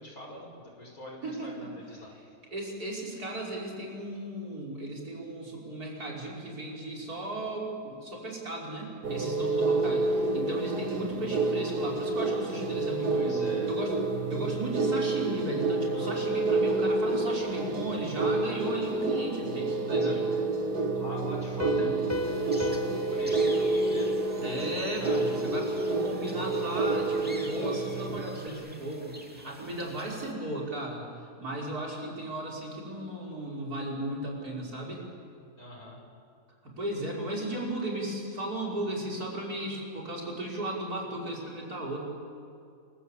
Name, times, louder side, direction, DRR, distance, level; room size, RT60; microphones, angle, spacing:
voice 1, 0.0-2.1 13.1-13.7 15.9-16.3 20.0-20.2 20.7-24.1 24.8-25.3 25.6-25.8 35.6-36.0, equal, 65° left, 0 dB, 6.1 m, -44 dB
voice 2, 1.2-1.7 2.5-13.9 14.3-20.2 21.6-21.9 24.4-31.0 31.4-35.0 36.6-42.0, right 1 dB, 70° right, -1 dB, 5.9 m, -35 dB
sound 1, 9.0-28.5, right 3 dB, 85° right, 2.4 m, -29 dB
Piano, 21.6-25.0, left 4 dB, 25° left, 0.3 m, -38 dB
sound 2, 22.1-30.3, equal, 5° right, 2.6 m, -47 dB
28.0 x 22.5 x 8.4 m, 2.4 s
omnidirectional pair, 1.7 m